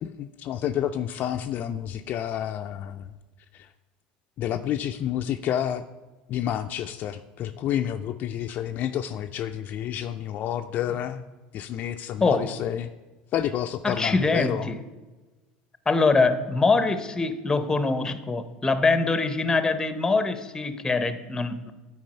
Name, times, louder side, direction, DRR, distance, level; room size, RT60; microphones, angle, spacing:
voice 1, 0.0-3.1 3.5-3.7 4.4-5.8 6.3-11.2 11.5-12.9 13.3-14.7, left 10 dB, 50° left, 7 dB, 0.4 m, -29 dB
voice 2, 13.8-14.8 15.9-21.7, left 3 dB, 15° left, 11 dB, 0.7 m, -23 dB
9.0 x 4.7 x 5.5 m, 1.2 s
supercardioid pair, 90°, 4 cm